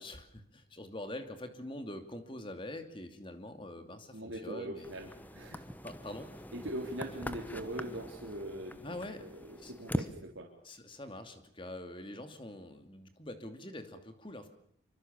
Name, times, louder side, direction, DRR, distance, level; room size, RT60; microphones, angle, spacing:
voice 1, 0.0-4.9 5.8-6.5 8.8-9.3 9.6-9.7 10.6-14.5, left 1 dB, 25° left, 7 dB, 2.6 m, -44 dB
voice 2, 4.1-5.6 6.5-10.5, right 1 dB, 80° right, 0 dB, 3.7 m, -42 dB
sound 1, 4.8-10.1, equal, 10° left, 1.1 m, -42 dB
27.0 x 24.5 x 7.1 m, 0.65 s
head